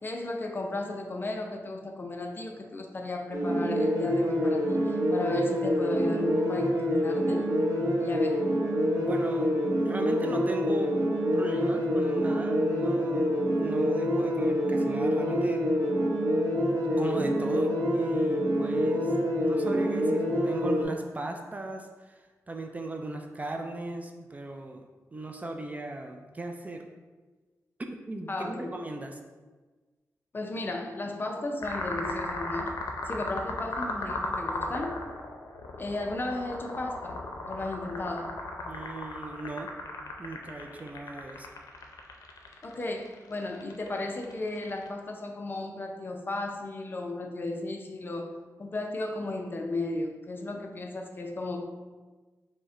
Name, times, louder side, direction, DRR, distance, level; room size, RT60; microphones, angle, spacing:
voice 1, 0.0-7.5 8.0-8.4 28.3-28.8 30.3-32.8 33.1-35.0 35.8-37.2 37.5-38.3 42.6-51.6, left 2 dB, 35° left, 2 dB, 0.5 m, -35 dB
sound 1, 3.3-20.8, equal, 55° right, 0.8 m, -26 dB
voice 2, 9.0-9.5 9.8-11.0 11.3-15.6 16.7-19.1 19.4-22.1 22.5-24.8 25.1-26.8 27.8-29.2 38.6-39.7 40.2-41.5, right 2 dB, 25° right, 4 dB, 0.3 m, -37 dB
sound 2, 31.6-44.9, left 2 dB, 90° left, 0.5 m, -36 dB
5.1 x 2.1 x 3.7 m, 1.3 s
wide cardioid pair, 115°, 6 cm